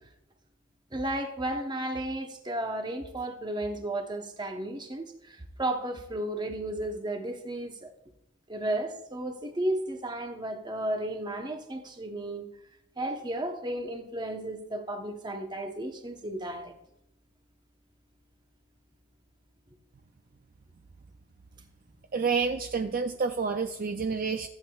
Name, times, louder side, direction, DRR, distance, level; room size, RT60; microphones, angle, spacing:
voice 1, 0.9-7.9 8.5-12.5 13.0-16.7, right 1 dB, 20° right, 0.9 m, -33 dB
voice 2, 22.1-24.5, right 5 dB, 40° right, 0.4 m, -29 dB
15.0 x 8.6 x 2.3 m
head